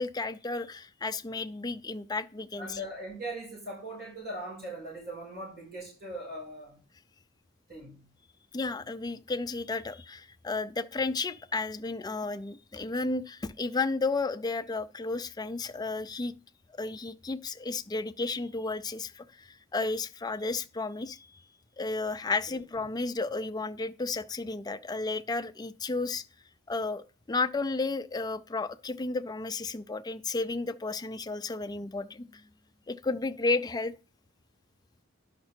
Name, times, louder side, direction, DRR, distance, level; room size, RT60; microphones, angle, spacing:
voice 1, 0.0-2.8 8.5-16.3 16.8-21.5 21.8-26.2 26.7-32.4 32.9-33.9, left 3 dB, 20° left, 0.4 m, -33 dB
voice 2, 2.6-6.8 7.7-8.0 22.5-22.6, right 1 dB, 55° right, 6.1 m, -40 dB
10.5 x 5.9 x 4.4 m
head